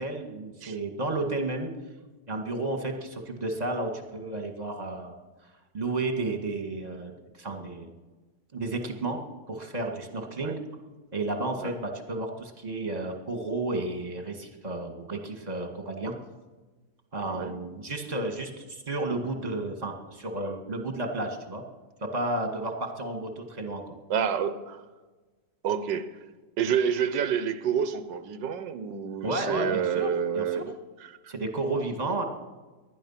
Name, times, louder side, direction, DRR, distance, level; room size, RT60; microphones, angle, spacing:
voice 1, 0.0-1.7 2.3-5.2 5.7-7.1 7.4-7.9 8.5-9.2 9.5-10.6 11.1-16.1 17.1-21.6 22.0-24.0 29.2-30.6 31.3-32.2, right 2 dB, 25° right, 4 dB, 2.1 m, -32 dB
voice 2, 24.1-24.8 25.6-26.2 26.6-31.3, right 7 dB, 85° right, 11 dB, 1.6 m, -29 dB
19.5 x 12.5 x 5.8 m, 1.2 s
omnidirectional pair, 1.9 m